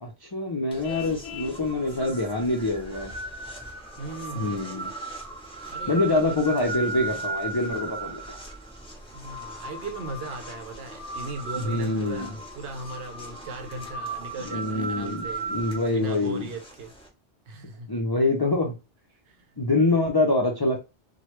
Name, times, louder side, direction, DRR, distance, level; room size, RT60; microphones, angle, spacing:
voice 1, 0.0-3.1 4.4-4.9 5.9-8.4 11.6-12.4 14.4-16.5 17.9-18.7 19.6-20.8, left 2 dB, 40° left, 0.3 m, -25 dB
sound 1, 0.7-17.1, right 3 dB, 5° left, 0.7 m, -37 dB
Vehicle horn car horn honking, 0.8-1.6, left 8 dB, 75° left, 0.8 m, -39 dB
voice 2, 4.0-4.6 5.7-6.4 9.1-15.4 15.9-16.9 17.5-17.9 19.3-19.5, right 2 dB, 70° right, 0.8 m, -38 dB
3.1 x 2.2 x 3.0 m
omnidirectional pair, 1.1 m